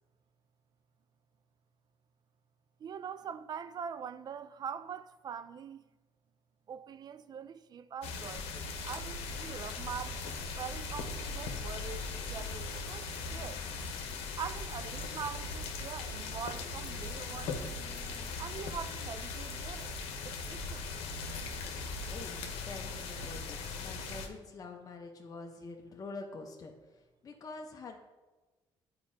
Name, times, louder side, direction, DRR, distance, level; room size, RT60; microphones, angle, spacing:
voice 1, 2.8-5.8 6.7-13.6 14.4-17.6 18.4-19.9 20.2-20.9, right 7 dB, 45° right, 0.3 m, -43 dB
sound 1, 8.0-24.3, left 4 dB, 90° left, 0.8 m, -39 dB
voice 2, 22.1-26.7 27.2-28.0, left 3 dB, 35° left, 0.8 m, -46 dB
9.4 x 4.8 x 2.7 m
cardioid pair, 95°, 10 cm